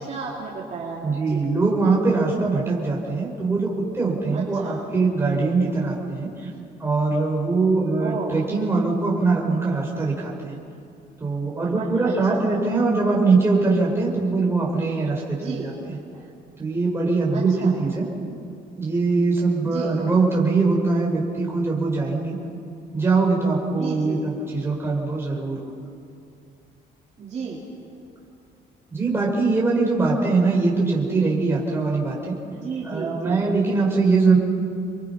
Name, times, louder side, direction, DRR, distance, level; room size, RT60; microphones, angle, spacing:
voice 1, 0.0-1.5 4.3-4.8 8.0-8.4 11.7-12.5 15.3-15.8 17.3-17.8 19.6-20.0 23.7-24.3 27.2-27.7 32.5-33.5, right 5 dB, 40° right, -4 dB, 2.7 m, -33 dB
voice 2, 1.0-6.5 6.8-10.6 11.2-16.0 16.6-18.1 18.8-22.4 22.9-25.7 28.9-32.4 32.8-34.4, right 3 dB, 15° right, -3 dB, 5.1 m, -22 dB
30.0 x 22.5 x 5.7 m, 2.5 s
cardioid pair, 160°, 18 cm